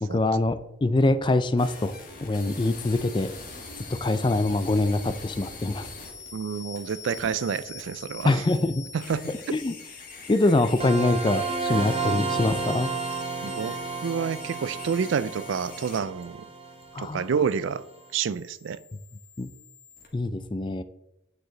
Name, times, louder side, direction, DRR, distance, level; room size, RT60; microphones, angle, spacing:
voice 1, 0.0-1.9 2.2-3.3 4.0-5.9 8.2-8.8 9.5-9.7 10.3-12.9 16.9-17.3 19.4-19.5 20.1-20.8, left 2 dB, 25° left, 12 dB, 0.4 m, -24 dB
sound 1, 1.6-20.1, left 4 dB, 45° left, 1.7 m, -43 dB
voice 2, 6.3-8.4 8.9-9.3 13.4-13.8 14.0-16.4 17.0-17.8 18.1-18.8, right 6 dB, 80° right, 17 dB, 0.4 m, -28 dB
sound 2, 10.8-17.5, right 4 dB, 30° right, 0.8 m, -32 dB
8.9 x 4.8 x 3.9 m, 0.86 s
head